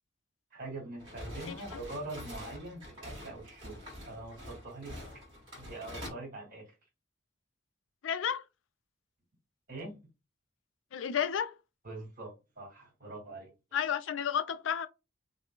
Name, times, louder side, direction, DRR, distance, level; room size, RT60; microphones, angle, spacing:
voice 1, 0.5-3.8 4.1-4.9 5.5-6.7 9.7-10.0 11.8-13.5, right 2 dB, 45° right, 1.9 m, -43 dB
sound 1, 1.0-6.1, equal, 25° right, 1.6 m, -46 dB
voice 2, 8.0-8.4 10.9-11.6 13.7-14.9, left 8 dB, 80° left, 0.4 m, -31 dB
5.3 x 2.1 x 2.2 m
head